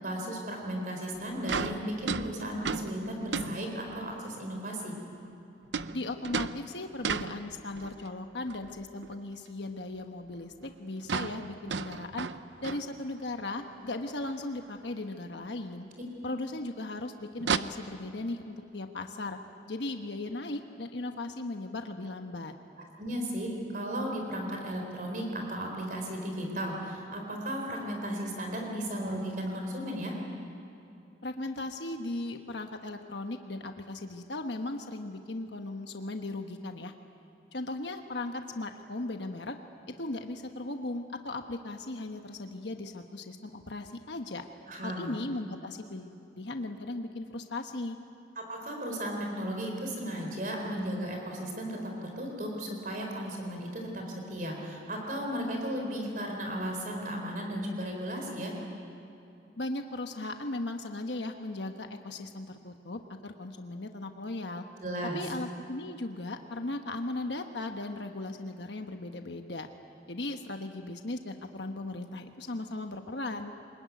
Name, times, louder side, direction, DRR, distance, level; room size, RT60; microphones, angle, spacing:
voice 1, 0.0-4.9 23.0-30.2 44.7-45.1 48.4-58.5 64.8-65.2, equal, 45° right, 1 dB, 4.1 m, -35 dB
sound 1, 1.1-1.2 1.4-4.1 5.7-8.1 8.5-9.2 9.5-9.6 9.9-10.0 10.3-10.4 10.6-10.7 11.0-13.4 13.8-13.9 14.2-14.3 15.4-15.5 17.4-17.6, right 5 dB, 80° right, 0.7 m, -35 dB
voice 2, 5.9-12.3 12.6-15.9 16.2-19.4 19.7-22.5 31.2-36.9 37.5-39.5 40.0-44.4 44.8-48.0 59.6-64.6 65.0-69.7 70.1-73.5, left 2 dB, 75° left, 5 dB, 1.2 m, -37 dB
24.5 x 21.0 x 9.4 m, 2.9 s
head